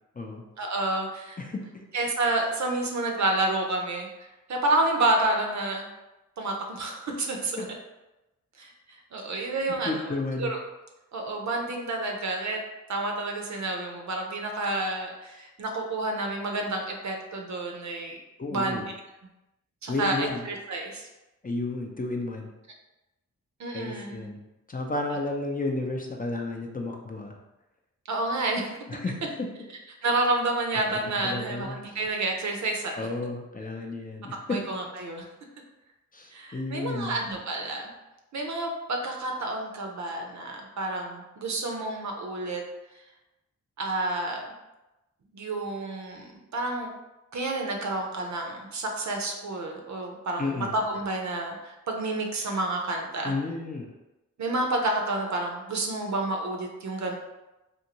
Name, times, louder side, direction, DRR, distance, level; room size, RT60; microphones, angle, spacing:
voice 1, 0.6-1.4 1.9-4.1 4.5-5.9 6.4-7.6 8.6-8.7 9.1-10.1 10.4-10.6 11.1-12.6 12.9-18.2 18.5-18.8 19.8-21.1 23.6-24.3 28.1-28.8 30.0-33.0 34.5-35.3 36.3-37.9 38.3-42.6 43.8-44.5 45.3-46.9 47.3-53.3 54.4-57.1, right 2 dB, 60° right, 2 dB, 0.6 m, -29 dB
voice 2, 9.8-10.5 18.4-18.9 19.9-20.4 21.4-22.5 23.7-27.4 28.9-29.5 30.9-32.0 33.0-34.6 36.1-37.2 50.4-50.7 53.2-53.9, left 2 dB, 25° left, 1 dB, 0.5 m, -32 dB
2.6 x 2.5 x 2.9 m, 1.0 s
cardioid pair, 40°, 32 cm